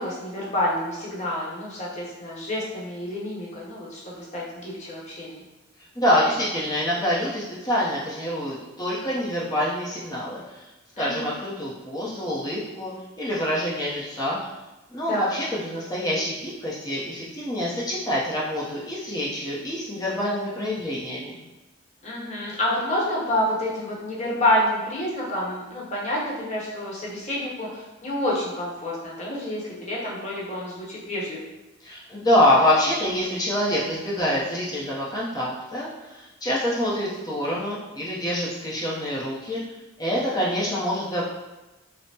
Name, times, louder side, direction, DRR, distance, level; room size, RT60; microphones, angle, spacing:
voice 1, 0.0-5.4 11.0-11.3 15.0-15.3 22.0-31.4, left 1 dB, 35° left, -5 dB, 0.9 m, -28 dB
voice 2, 6.0-10.7 11.0-12.9 13.2-14.4 14.9-21.3 31.8-39.6 40.0-41.2, left 1 dB, 20° left, -7 dB, 0.6 m, -26 dB
5.1 x 2.0 x 2.7 m, 1.1 s
head